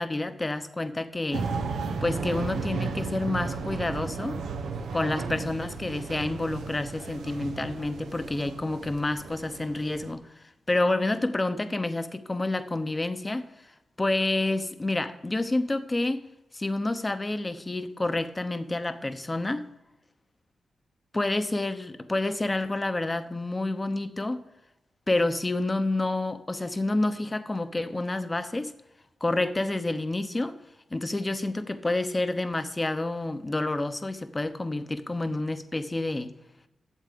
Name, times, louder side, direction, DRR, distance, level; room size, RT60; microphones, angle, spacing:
voice 1, 0.0-1.5 2.0-4.4 4.9-10.2 10.7-13.5 14.0-16.2 16.5-19.6 21.1-24.5 25.1-28.7 29.2-30.6 30.9-36.3, left 2 dB, 25° left, 10 dB, 0.9 m, -29 dB
sound 1, 1.3-10.1, right 4 dB, 90° right, 0.9 m, -34 dB
8.3 x 7.2 x 6.8 m, 0.89 s
cardioid pair, 70°, 0 cm